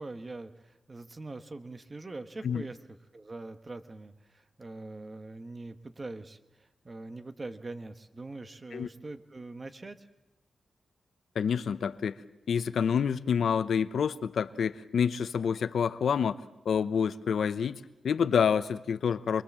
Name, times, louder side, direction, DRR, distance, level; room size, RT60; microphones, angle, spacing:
voice 1, 0.0-10.1, right 2 dB, 25° right, 9 dB, 1.2 m, -43 dB
voice 2, 11.3-12.1 12.5-16.4 16.6-19.4, left 7 dB, 80° left, 13 dB, 0.8 m, -28 dB
28.0 x 22.0 x 7.4 m, 0.96 s
wide cardioid pair, 150°, 0 cm